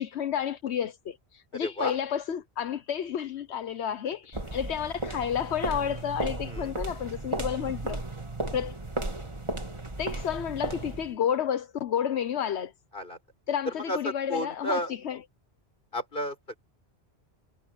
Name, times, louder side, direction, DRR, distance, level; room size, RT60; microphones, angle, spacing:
voice 1, 0.0-8.0 8.5-8.8 10.0-12.7 13.5-15.2, left 8 dB, 85° left, 1.2 m, -31 dB
voice 2, 1.5-2.0 4.1-4.2 6.5-6.8 12.9-13.2 13.7-14.9 15.9-16.6, left 1 dB, 55° left, 7.0 m, -32 dB
sound 1, 4.3-11.2, right 1 dB, 25° right, 2.3 m, -34 dB
omnidirectional pair, 1.1 m